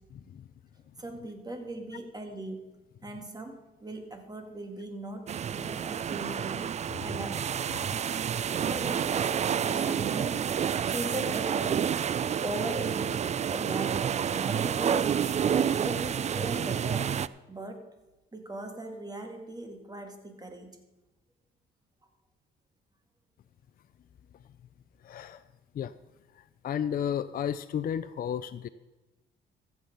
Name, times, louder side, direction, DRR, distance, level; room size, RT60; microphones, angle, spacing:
voice 1, 1.0-2.6 3.0-7.7 8.5-10.4 10.9-17.1 17.5-17.8 18.3-20.8, right 1 dB, 20° right, 4 dB, 2.1 m, -39 dB
sound 1, 5.3-17.3, right 8 dB, 35° right, 0.4 m, -29 dB
voice 2, 25.0-25.4 25.7-25.9 26.3-28.7, left 9 dB, 45° left, 12 dB, 0.5 m, -33 dB
14.5 x 7.4 x 5.5 m, 1.1 s
cardioid pair, 90°, 20 cm